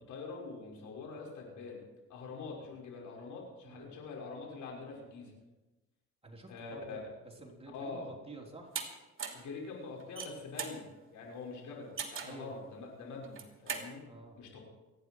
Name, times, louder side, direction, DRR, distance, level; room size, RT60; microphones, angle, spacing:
voice 1, 0.1-1.8 2.1-5.3 6.5-7.0 7.7-8.1 9.3-14.0 14.4-14.6, left 4 dB, 75° left, -1 dB, 5.9 m, -44 dB
voice 2, 6.2-7.0 7.4-8.7 12.2-12.5 14.0-14.4, right 2 dB, 20° right, 0 dB, 3.3 m, -50 dB
sound 1, 8.7-8.9 9.2-9.5 10.0-10.8 12.0-12.4 13.2-13.9, right 6 dB, 45° right, 2.8 m, -39 dB
28.0 x 10.0 x 4.7 m, 1.1 s
cardioid pair, 90°, 30 cm